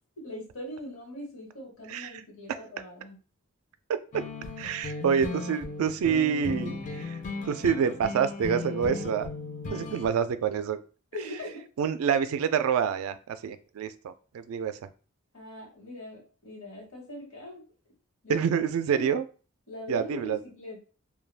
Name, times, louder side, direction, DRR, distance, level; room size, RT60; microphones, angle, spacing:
voice 1, 0.2-3.2 11.1-11.6 15.3-17.6 18.2-18.5 18.9-19.1 19.7-20.8, left 1 dB, 65° left, -1 dB, 1.1 m, -41 dB
voice 2, 1.9-2.2 4.6-7.2 7.5-9.3 9.7-10.8 11.8-14.8 18.3-19.2 19.9-20.4, right 7 dB, 75° right, 12 dB, 0.3 m, -27 dB
sound 1, 4.1-10.1, left 3 dB, 35° left, 0.4 m, -36 dB
2.3 x 2.2 x 3.3 m, 0.37 s
head